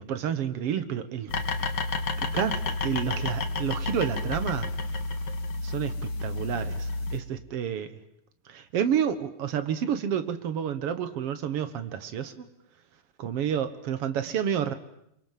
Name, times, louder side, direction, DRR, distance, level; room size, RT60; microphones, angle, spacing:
voice 1, 0.0-1.3 2.2-4.7 5.6-7.9 8.5-12.5 13.2-14.7, right 8 dB, 60° right, 12 dB, 1.7 m, -30 dB
sound 1, 1.3-7.2, left 3 dB, 40° left, 1.8 m, -30 dB
sound 2, 3.6-5.8, right 4 dB, 10° right, 3.7 m, -47 dB
27.0 x 23.5 x 7.5 m, 0.76 s
omnidirectional pair, 3.9 m